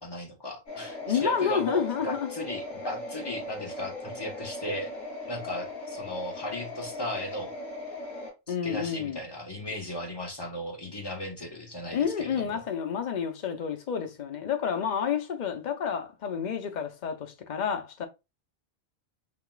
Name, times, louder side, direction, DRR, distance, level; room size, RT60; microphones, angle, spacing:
voice 1, 0.0-4.9 5.3-7.5 8.5-12.6, equal, 20° left, 1.0 m, -36 dB
sound 1, 0.7-8.3, left 2 dB, 85° left, 2.9 m, -39 dB
voice 2, 1.1-2.3 8.5-9.2 11.9-18.1, left 7 dB, 45° left, 0.7 m, -29 dB
5.9 x 2.9 x 2.3 m
omnidirectional pair, 1.3 m